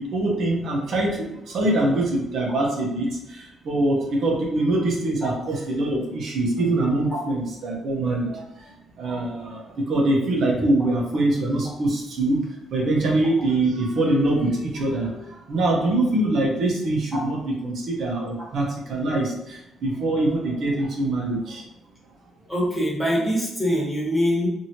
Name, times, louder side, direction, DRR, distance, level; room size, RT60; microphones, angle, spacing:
voice 1, 0.0-12.4 12.7-17.4 17.6-21.6, right 2 dB, 65° right, -1 dB, 0.8 m, -24 dB
voice 2, 22.5-24.5, equal, 5° left, -5 dB, 1.2 m, -23 dB
2.9 x 2.6 x 2.8 m, 0.86 s
cardioid pair, 90°, 0 cm